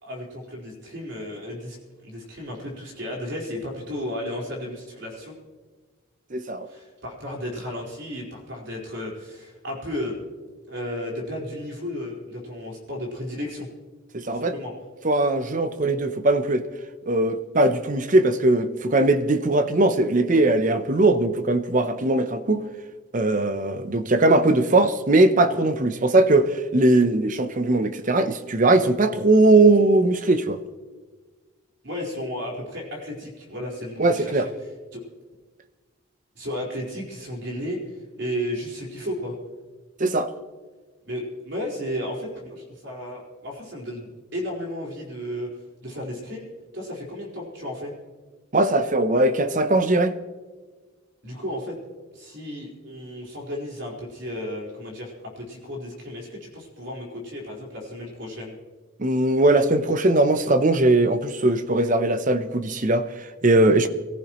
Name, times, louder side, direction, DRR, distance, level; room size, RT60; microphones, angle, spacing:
voice 1, 0.0-5.4 6.7-10.2 10.7-13.7 14.3-14.7 31.8-34.5 34.9-35.1 36.3-37.8 38.2-39.3 41.0-45.5 45.8-46.5 46.7-47.9 51.2-51.7 52.1-58.5, equal, 60° right, 4.5 m, -33 dB
voice 2, 6.3-6.7 14.1-14.5 15.0-16.7 17.1-22.7 23.1-30.6 34.0-34.5 40.0-40.3 48.5-50.1 59.0-63.9, right 2 dB, 40° right, 0.7 m, -20 dB
24.0 x 14.5 x 3.1 m
head